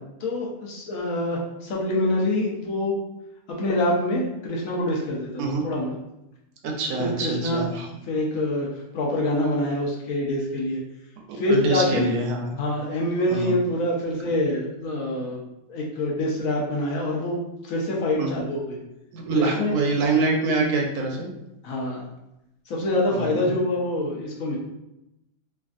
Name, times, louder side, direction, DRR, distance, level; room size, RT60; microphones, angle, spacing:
voice 1, 0.2-3.0 3.5-5.9 7.0-7.7 8.1-10.8 11.4-12.1 12.6-15.4 15.7-18.8 19.3-19.7 21.6-22.1 22.7-24.6, left 1 dB, 65° left, -2 dB, 1.0 m, -25 dB
voice 2, 6.6-7.9 11.3-12.6 13.3-13.5 18.2-18.3 19.1-21.3 23.1-23.5, right 3 dB, 80° right, 2 dB, 1.1 m, -25 dB
3.3 x 2.3 x 2.4 m, 0.88 s
omnidirectional pair, 1.6 m